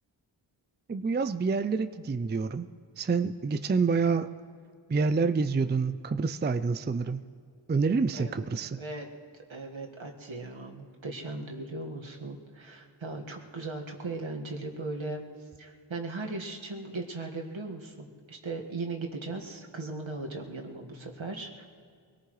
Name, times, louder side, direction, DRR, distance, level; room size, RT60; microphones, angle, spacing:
voice 1, 0.9-2.7 3.0-4.3 4.9-7.2 7.7-8.8, right 4 dB, 25° right, 11 dB, 0.4 m, -27 dB
voice 2, 8.1-9.1 9.5-15.2 15.6-21.7, right 3 dB, 70° right, 1 dB, 1.8 m, -38 dB
23.5 x 18.5 x 3.2 m, 2.1 s
wide cardioid pair, 65°, 48 cm